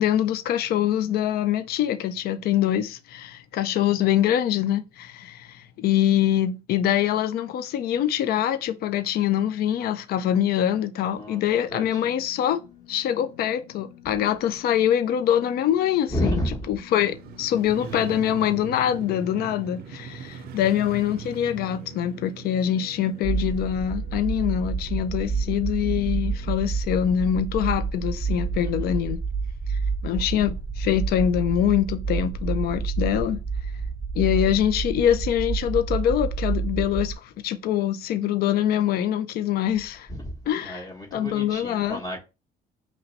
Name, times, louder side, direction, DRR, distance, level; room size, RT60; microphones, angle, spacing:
voice 1, 0.0-12.6 12.9-16.4 16.7-29.2 29.7-33.4 34.2-40.1 40.5-40.9 41.1-42.0, left 10 dB, 65° left, 0.5 m, -24 dB
sound 1, 9.8-26.5, left 9 dB, 90° left, 0.8 m, -51 dB
voice 2, 11.7-12.2 16.1-16.7 17.8-18.1 28.6-29.0 40.1-40.3 40.6-42.2, equal, 25° left, 1.1 m, -31 dB
Motorcycle, 16.9-27.0 27.3-27.4, right 9 dB, 65° right, 0.4 m, -42 dB
sound 2, 23.2-37.1, right 5 dB, 10° right, 0.4 m, -29 dB
3.0 x 2.7 x 4.4 m
cardioid pair, 110°, 17 cm